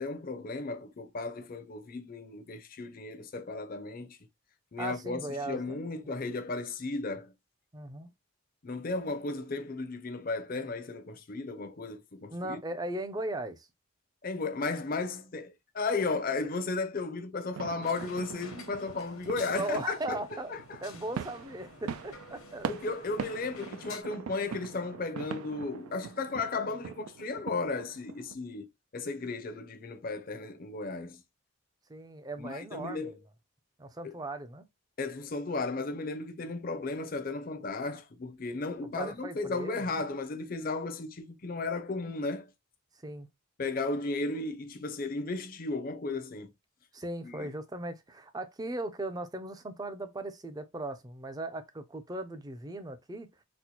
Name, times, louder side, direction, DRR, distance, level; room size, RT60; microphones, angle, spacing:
voice 1, 0.0-4.2 4.7-7.3 8.6-12.6 14.2-20.2 20.5-20.8 22.7-28.7 28.9-31.2 32.4-33.1 34.0-34.1 35.0-42.5 43.6-46.5 47.2-47.5, left 3 dB, 40° left, 0.5 m, -35 dB
voice 2, 4.8-5.8 7.7-8.1 12.3-13.7 19.5-20.5 20.8-22.9 24.4-24.6 31.9-33.2 33.8-34.6 38.8-39.8 43.0-43.3 46.9-53.3, right 2 dB, 20° right, 0.4 m, -38 dB
sound 1, 17.5-28.3, right 7 dB, 80° right, 0.3 m, -42 dB
sound 2, 17.8-24.0, left 5 dB, 80° left, 1.0 m, -51 dB
4.1 x 2.1 x 2.8 m
head